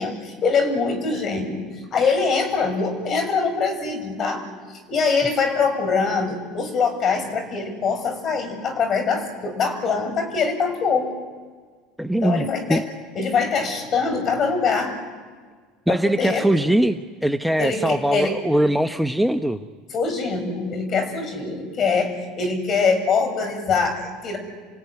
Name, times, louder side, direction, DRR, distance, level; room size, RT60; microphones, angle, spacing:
voice 1, 0.0-1.7 1.9-11.1 12.2-12.8 13.2-14.9 15.9-16.5 17.6-18.4 19.9-24.4, left 5 dB, 40° left, 7 dB, 7.0 m, -23 dB
voice 2, 12.0-12.8 15.9-19.6, right 1 dB, ahead, 8 dB, 1.0 m, -21 dB
29.5 x 17.0 x 9.6 m, 1.5 s
supercardioid pair, 95°, 0 cm